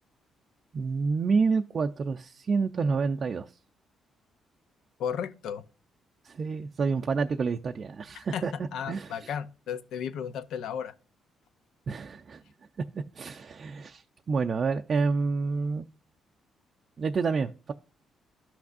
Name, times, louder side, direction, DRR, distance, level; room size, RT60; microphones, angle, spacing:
voice 1, 0.7-3.5 6.2-9.3 11.9-12.4 12.9-15.8 17.0-17.7, right 4 dB, 45° right, 0.5 m, -29 dB
voice 2, 5.0-5.6 8.1-10.9, left 8 dB, 80° left, 0.6 m, -34 dB
13.0 x 5.9 x 2.5 m
cardioid pair, 90°, 0 cm